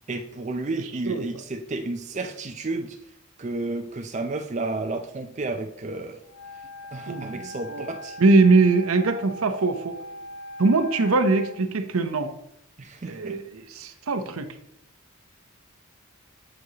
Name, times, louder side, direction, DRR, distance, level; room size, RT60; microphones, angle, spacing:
voice 1, 0.1-3.0 3.4-6.2 6.9-8.2 12.8-13.4, right 2 dB, 35° right, 5 dB, 0.4 m, -32 dB
Wind instrument woodwind instrument, 6.3-11.6, left 1 dB, 80° left, 0.7 m, -40 dB
voice 2, 7.1-7.4 7.7-7.9 8.2-9.9 10.6-12.3 13.1-14.5, right 3 dB, 75° right, 9 dB, 0.8 m, -21 dB
7.9 x 7.7 x 2.9 m, 0.77 s
head